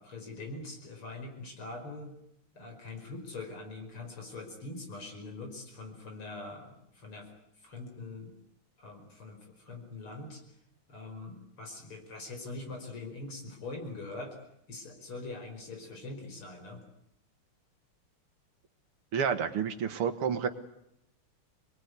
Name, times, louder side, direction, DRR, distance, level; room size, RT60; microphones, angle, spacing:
voice 1, 0.0-2.2 2.5-7.3 7.6-8.3 8.8-10.4 10.9-14.4 14.7-16.8, left 2 dB, 75° left, 3 dB, 5.9 m, -43 dB
voice 2, 19.1-20.5, right 7 dB, 90° right, 9 dB, 2.6 m, -29 dB
25.0 x 21.5 x 9.7 m, 0.79 s
omnidirectional pair, 2.4 m